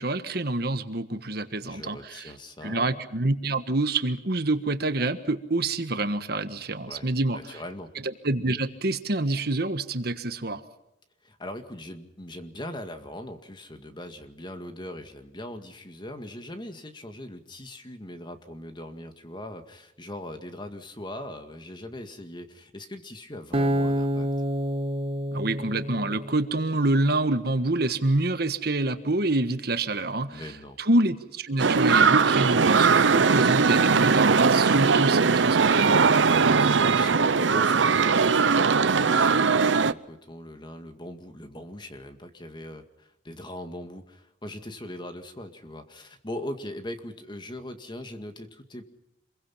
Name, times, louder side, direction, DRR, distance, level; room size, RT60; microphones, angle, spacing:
voice 1, 0.0-2.3 2.6-7.6 8.2-10.6 25.3-30.5 30.8-36.0, right 2 dB, 60° right, 10 dB, 1.5 m, -27 dB
voice 2, 1.6-3.0 6.9-7.9 11.2-24.3 30.3-30.8 36.3-48.8, left 1 dB, 25° left, 7 dB, 2.0 m, -40 dB
Acoustic guitar, 23.5-26.8, equal, 30° right, 1.6 m, -28 dB
sound 1, 31.6-39.9, right 5 dB, 90° right, 0.7 m, -20 dB
27.0 x 22.5 x 5.8 m, 0.88 s
head